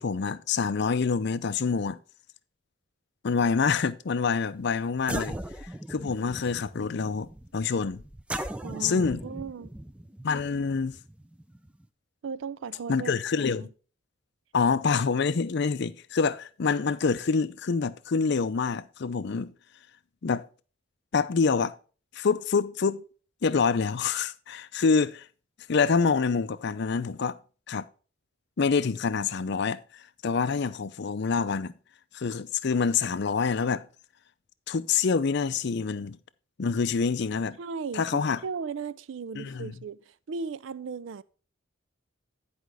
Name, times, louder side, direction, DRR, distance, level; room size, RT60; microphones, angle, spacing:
voice 1, 0.0-2.0 3.2-5.4 5.9-8.0 8.8-9.2 10.2-11.0 12.9-13.7 14.5-19.5 20.2-20.4 21.1-21.7 22.1-23.0 23.4-25.3 25.7-27.4 27.7-27.8 28.6-31.7 32.1-33.8 34.7-36.2 36.6-37.6 37.9-38.4 39.4-39.8, left 5 dB, 55° left, 0.5 m, -26 dB
sound 1, 4.6-4.7 5.0-11.9, right 1 dB, 5° right, 0.4 m, -39 dB
voice 2, 8.6-9.7 12.2-13.7 37.6-41.2, right 5 dB, 70° right, 0.4 m, -37 dB
10.5 x 5.1 x 4.7 m
head